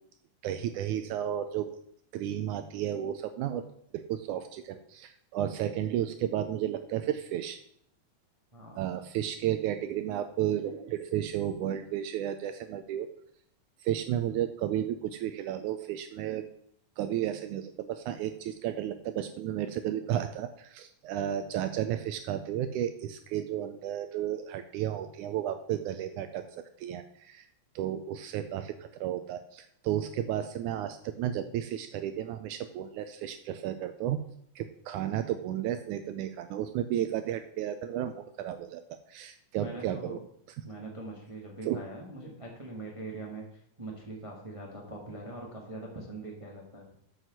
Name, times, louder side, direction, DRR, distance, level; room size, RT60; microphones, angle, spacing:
voice 1, 0.4-1.8 2.1-3.7 3.9-7.6 8.8-13.1 13.8-16.4 17.0-26.4 26.8-27.5 27.8-34.2 34.6-38.8 39.1-40.2 41.7-41.8, right 11 dB, 80° right, 9 dB, 1.9 m, -33 dB
voice 2, 8.5-8.8 39.5-40.2 40.6-46.9, right 2 dB, 25° right, -1 dB, 0.6 m, -42 dB
7.9 x 6.0 x 6.0 m, 0.70 s
omnidirectional pair, 3.7 m